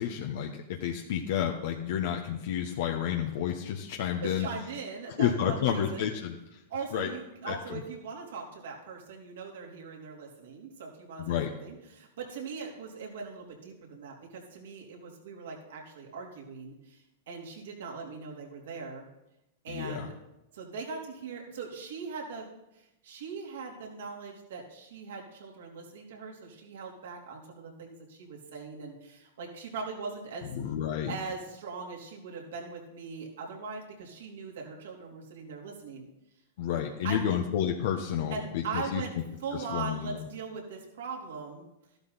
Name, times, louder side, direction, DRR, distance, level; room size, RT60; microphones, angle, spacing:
voice 1, 0.0-4.5 5.2-6.6 6.9-7.1 7.4-7.8 11.3-11.5 19.7-20.1 30.4-31.1 36.6-39.0 39.5-40.3, left 9 dB, 65° left, 2 dB, 1.2 m, -30 dB
voice 2, 4.2-6.1 6.7-19.1 19.6-20.2 20.5-30.5 31.1-36.1 37.0-37.4 38.3-39.1 39.4-41.7, right 5 dB, 75° right, -1 dB, 3.7 m, -40 dB
13.5 x 12.0 x 4.2 m, 0.89 s
hypercardioid pair, 110°, 0 cm